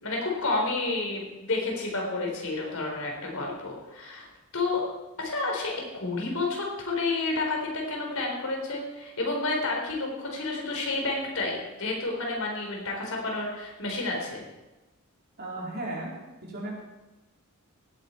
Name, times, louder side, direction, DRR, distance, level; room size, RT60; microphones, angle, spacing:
voice 1, 0.0-4.3 4.5-4.8 5.2-14.4, left 3 dB, 75° left, 0 dB, 4.1 m, -30 dB
voice 2, 15.4-16.1 16.4-16.8, right 1 dB, 45° right, -3 dB, 3.8 m, -35 dB
17.0 x 9.6 x 4.5 m, 1.1 s
head